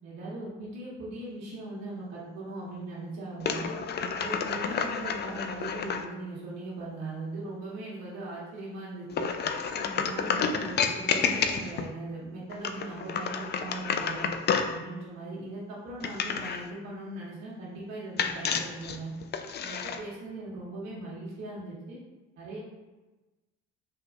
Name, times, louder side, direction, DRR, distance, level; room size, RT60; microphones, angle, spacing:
voice 1, 0.0-3.7 4.0-9.3 9.7-14.3 14.6-19.1 19.6-22.0 22.4-22.6, right 2 dB, 65° right, -7 dB, 1.2 m, -39 dB
sound 1, 3.4-6.0 9.1-11.9 12.5-14.8 16.0-16.7 18.2-20.0, left 6 dB, 35° left, 0.4 m, -30 dB
3.5 x 2.9 x 3.6 m, 1.2 s
hypercardioid pair, 65°, 30 cm